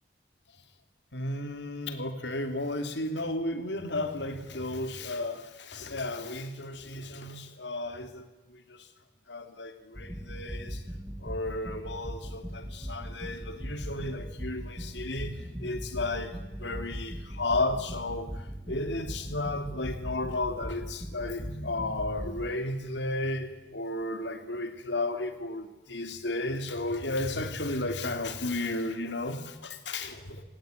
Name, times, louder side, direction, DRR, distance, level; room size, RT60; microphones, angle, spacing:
voice 1, 1.1-8.9 9.3-10.8 11.2-16.3 16.6-18.3 18.7-30.2, left 2 dB, 80° left, 8 dB, 2.9 m, -33 dB
sound 1, 9.9-22.6, equal, 15° right, 2.4 m, -39 dB
28.0 x 19.0 x 9.3 m, 1.1 s
head